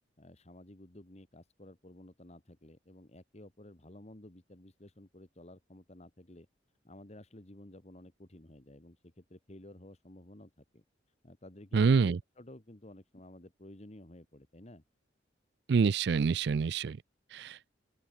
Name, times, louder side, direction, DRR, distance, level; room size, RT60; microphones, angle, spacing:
voice 1, 0.2-6.5 6.8-10.8 11.2-14.8, left 1 dB, 35° left, 1.7 m, -53 dB
voice 2, 11.7-12.2 15.7-17.0 17.3-17.6, right 5 dB, 65° right, 0.4 m, -26 dB
open air
head